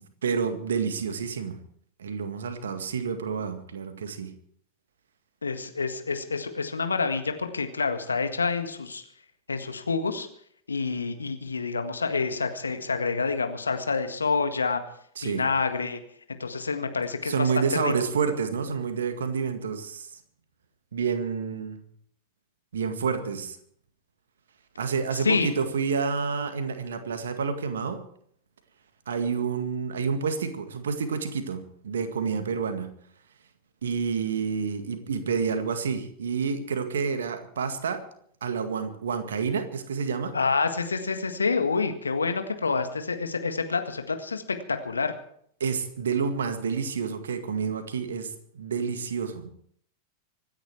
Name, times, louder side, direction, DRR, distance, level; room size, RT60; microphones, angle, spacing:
voice 1, 0.2-1.6 2.0-4.3 15.2-15.4 17.2-20.1 20.9-21.8 22.7-23.6 24.8-28.0 29.1-32.9 33.8-38.0 38.4-40.3 45.6-49.5, right 6 dB, 65° right, 8 dB, 1.9 m, -29 dB
voice 2, 5.4-9.0 9.5-10.3 10.7-14.8 15.2-16.0 16.4-17.9 25.1-25.5 40.3-45.1, left 4 dB, 75° left, 7 dB, 1.7 m, -28 dB
25.0 x 10.0 x 4.7 m, 0.65 s
figure-of-eight pair, 90°, 0 cm